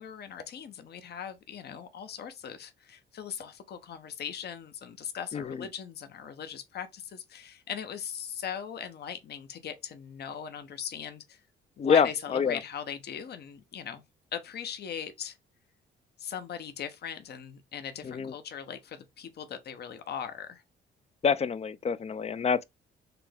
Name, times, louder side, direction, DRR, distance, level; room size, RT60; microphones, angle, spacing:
voice 1, 0.0-11.4 11.8-14.0 14.3-15.4 16.2-20.6, left 8 dB, 55° left, 0.8 m, -39 dB
voice 2, 5.3-5.7 11.8-12.6 18.0-18.3 21.2-22.6, left 6 dB, 30° left, 0.4 m, -26 dB
5.8 x 2.3 x 3.3 m
cardioid pair, 90°, 20 cm